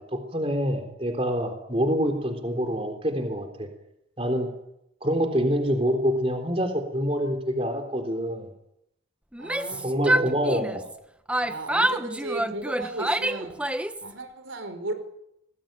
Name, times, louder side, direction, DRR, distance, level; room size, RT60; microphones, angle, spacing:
voice 1, 0.1-3.7 4.2-4.5 5.0-8.5 9.8-10.8, equal, 30° right, 5 dB, 3.7 m, -26 dB
Yell, 9.3-11.0 11.3-14.1, right 1 dB, 5° right, 1.1 m, -27 dB
voice 2, 9.4-10.4 11.4-13.6 14.0-14.9, right 2 dB, 80° right, 8 dB, 5.2 m, -35 dB
28.0 x 20.0 x 9.1 m, 0.81 s
head